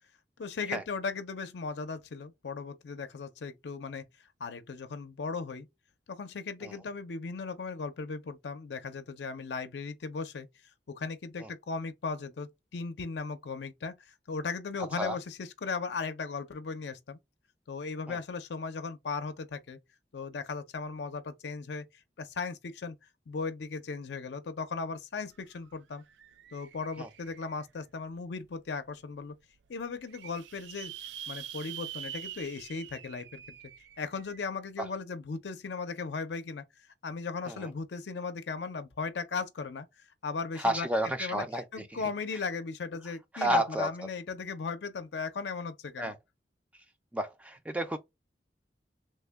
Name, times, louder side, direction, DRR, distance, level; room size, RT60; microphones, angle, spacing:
voice 1, 0.4-4.0 4.4-5.7 6.1-10.5 10.9-17.2 17.7-19.8 20.1-21.9 22.2-23.0 23.3-26.0 26.5-29.3 29.7-30.9 31.3-33.4 34.0-36.6 37.0-39.9 40.2-40.9 41.2-41.4 41.7-46.1, left 4 dB, 80° left, 0.5 m, -37 dB
sound 1, 25.3-25.4 25.7-27.8 28.4-28.5 28.9-29.0 29.1-29.2 29.8-34.4, right 10 dB, 85° right, 0.3 m, -45 dB
voice 2, 40.6-42.0 43.3-44.1 46.0-46.2 46.7-46.8 47.1-48.0, right 1 dB, 10° right, 0.3 m, -31 dB
3.2 x 2.1 x 3.3 m
head